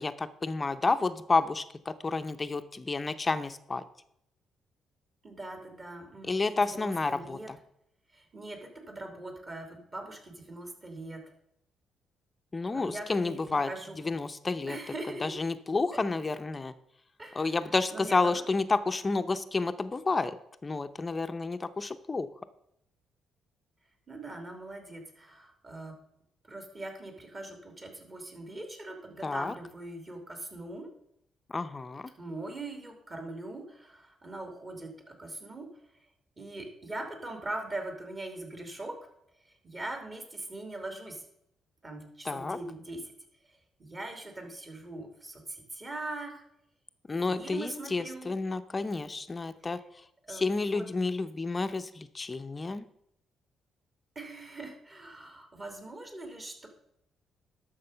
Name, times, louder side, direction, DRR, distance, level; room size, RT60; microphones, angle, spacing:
voice 1, 0.0-3.8 6.3-7.6 12.5-13.7 14.0-14.8 15.2-16.7 17.3-20.4 20.6-22.3 29.2-29.5 31.5-32.1 42.2-42.6 47.1-49.8 50.3-52.9, left 3 dB, 25° left, 10 dB, 0.6 m, -30 dB
voice 2, 5.2-7.5 8.1-11.2 12.7-14.2 14.7-15.4 15.9-16.0 17.2-17.5 17.9-18.4 24.1-25.9 26.4-30.9 32.2-35.7 36.4-39.0 39.4-41.3 41.8-43.0 43.4-46.4 47.2-48.3 50.2-50.9 54.1-56.7, right 2 dB, 30° right, 4 dB, 2.8 m, -41 dB
12.0 x 6.3 x 5.6 m, 0.76 s
cardioid pair, 90°, 0 cm